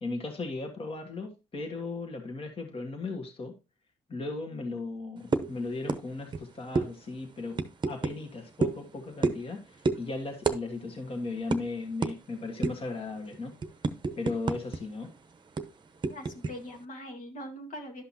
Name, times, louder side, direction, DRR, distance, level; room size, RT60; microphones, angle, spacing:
voice 1, 0.0-3.6 4.1-7.6 7.8-13.6 14.1-15.1, left 3 dB, 40° left, 1.7 m, -36 dB
sound 1, 5.3-5.5 5.9-6.0 6.3-6.4 6.8-6.9 7.6-8.2 8.6-8.8 9.2-9.5 9.8-10.0 10.4-10.6 10.9-11.0 11.5-11.6 12.0-12.2 12.6-12.9 13.3-14.8 15.0-15.2 15.6-16.5, right 4 dB, 30° right, 0.8 m, -28 dB
voice 2, 16.1-18.0, equal, 60° left, 1.8 m, -42 dB
11.5 x 5.6 x 2.8 m
supercardioid pair, 65°, 15 cm